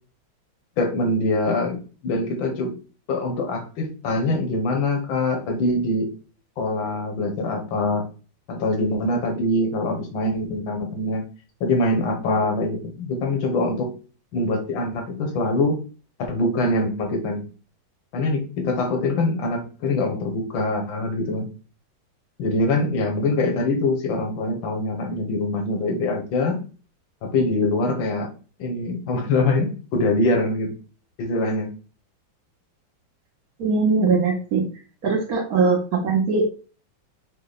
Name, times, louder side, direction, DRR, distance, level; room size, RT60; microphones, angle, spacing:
voice 1, 0.8-2.7 3.1-6.1 6.6-8.1 8.5-11.3 11.6-13.9 14.3-15.8 16.3-17.4 18.1-21.5 22.4-26.6 27.2-28.3 28.6-30.7 31.2-31.7, left 2 dB, 85° left, 2 dB, 1.7 m, -24 dB
voice 2, 33.6-34.6 35.0-36.4, right 4 dB, 60° right, 2 dB, 1.1 m, -21 dB
5.3 x 2.2 x 3.9 m, 0.37 s
omnidirectional pair, 2.1 m